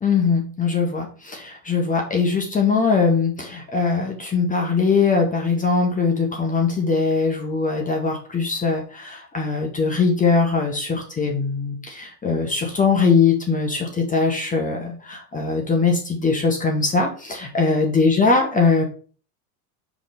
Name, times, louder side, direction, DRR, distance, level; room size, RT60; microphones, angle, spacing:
voice 1, 0.0-18.9, left 4 dB, 15° left, 2 dB, 1.5 m, -21 dB
5.1 x 3.7 x 5.1 m, 0.40 s
hypercardioid pair, 105°, 48 cm